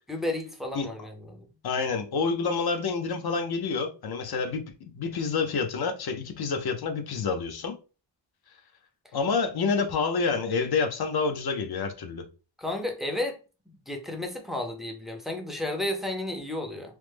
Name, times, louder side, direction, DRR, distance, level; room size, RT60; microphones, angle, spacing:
voice 1, 0.1-1.5 12.6-13.4 13.7-17.0, left 1 dB, ahead, 0.5 m, -32 dB
voice 2, 1.6-4.6 4.9-7.8 9.1-12.2, left 4 dB, 55° left, 0.6 m, -28 dB
3.1 x 2.0 x 3.3 m
wide cardioid pair, 140°, 45 cm